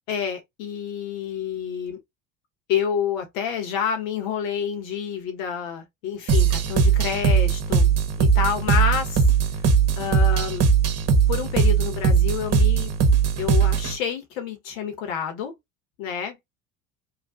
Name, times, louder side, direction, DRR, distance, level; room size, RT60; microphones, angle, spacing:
voice 1, 0.1-2.0 2.7-7.9 8.2-9.6 9.9-10.7 11.1-12.9 13.3-15.5 16.0-16.4, left 8 dB, 75° left, 1.3 m, -28 dB
sound 1, 6.3-14.0, right 6 dB, 35° right, 0.9 m, -19 dB
3.1 x 2.5 x 2.4 m
hypercardioid pair, 70°, 41 cm